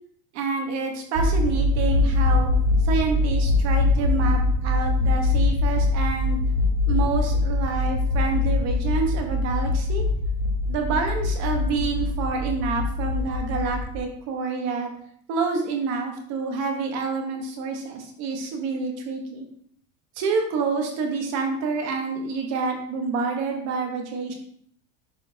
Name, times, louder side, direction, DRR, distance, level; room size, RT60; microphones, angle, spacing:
voice 1, 0.3-2.5 2.9-6.4 6.9-10.0 10.7-14.9 15.3-19.4 20.2-24.3, right 4 dB, 35° right, 3 dB, 1.3 m, -28 dB
sound 1, 1.1-14.0, left 2 dB, 50° right, 1.3 m, -23 dB
11.5 x 4.3 x 2.8 m, 0.63 s
supercardioid pair, 175°, 48 cm